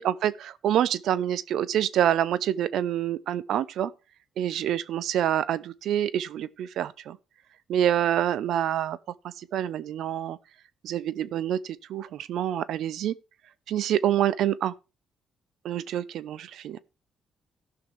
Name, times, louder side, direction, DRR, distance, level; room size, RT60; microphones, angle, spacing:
voice 1, 0.0-3.9 4.4-7.2 7.7-9.0 9.2-10.4 10.8-13.2 13.7-14.7 15.6-16.8, right 11 dB, 75° right, 0.6 m, -27 dB
16.5 x 5.9 x 3.4 m
cardioid pair, 90°, 0 cm